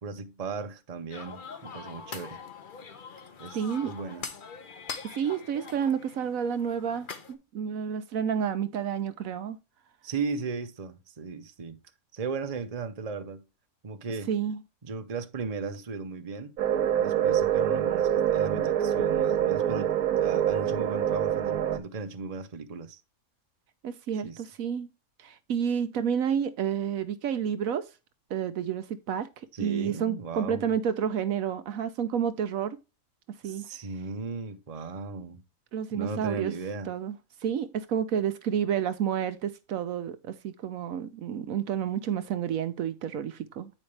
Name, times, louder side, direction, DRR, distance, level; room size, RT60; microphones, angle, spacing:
voice 1, 0.0-2.4 3.4-4.3 10.0-11.8 12.1-13.4 13.8-14.3 14.8-16.5 17.0-23.0 24.2-24.4 29.5-30.7 33.4-35.4 35.9-36.9, right 4 dB, 30° right, 0.8 m, -36 dB
sound 1, 1.1-7.3, left 5 dB, 40° left, 0.9 m, -43 dB
voice 2, 3.5-3.9 5.0-9.6 14.3-14.6 23.8-24.9 25.2-27.8 28.3-29.3 29.6-32.8 33.4-33.7 35.7-36.5 36.9-37.1 37.4-43.7, right 8 dB, 70° right, 1.1 m, -30 dB
sound 2, 16.6-21.8, right 10 dB, 90° right, 1.3 m, -25 dB
8.8 x 5.1 x 3.2 m
omnidirectional pair, 1.5 m